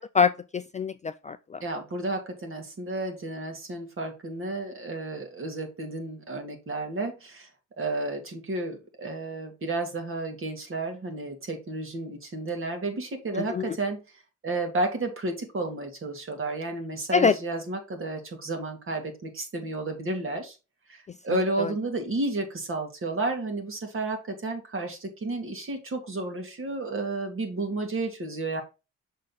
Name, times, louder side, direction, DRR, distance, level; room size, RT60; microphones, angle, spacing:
voice 1, 0.0-1.6 13.5-13.8 17.1-17.3 21.6-21.7, left 5 dB, 25° left, 0.3 m, -25 dB
voice 2, 1.6-7.5 7.8-14.0 14.4-20.6 20.9-28.6, right 2 dB, 45° right, 2.2 m, -32 dB
6.4 x 4.1 x 4.2 m
cardioid pair, 90°, 30 cm